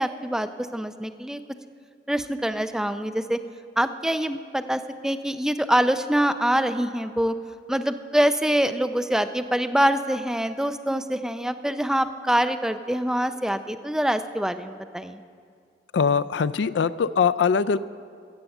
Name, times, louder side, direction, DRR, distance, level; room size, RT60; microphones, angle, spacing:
voice 1, 0.0-1.4 2.1-3.4 3.8-7.3 7.7-15.2, equal, 5° right, 9 dB, 0.4 m, -25 dB
voice 2, 15.9-17.8, left 6 dB, 80° left, 16 dB, 0.4 m, -22 dB
15.0 x 7.8 x 7.2 m, 2.2 s
head